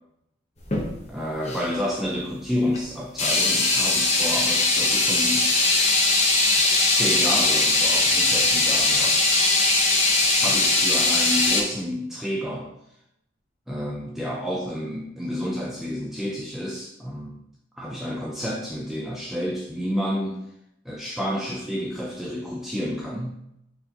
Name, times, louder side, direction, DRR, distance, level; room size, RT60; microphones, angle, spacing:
sound 1, 0.6-0.9 1.5-1.7 2.7-2.8 3.2-11.6, left 2 dB, 35° left, 0.7 m, -20 dB
voice 1, 1.1-5.5 6.9-9.2 10.4-12.7 13.7-17.4 17.8-20.4 20.8-23.4, equal, ahead, -3 dB, 0.3 m, -30 dB
4.3 x 3.7 x 2.8 m, 0.80 s
head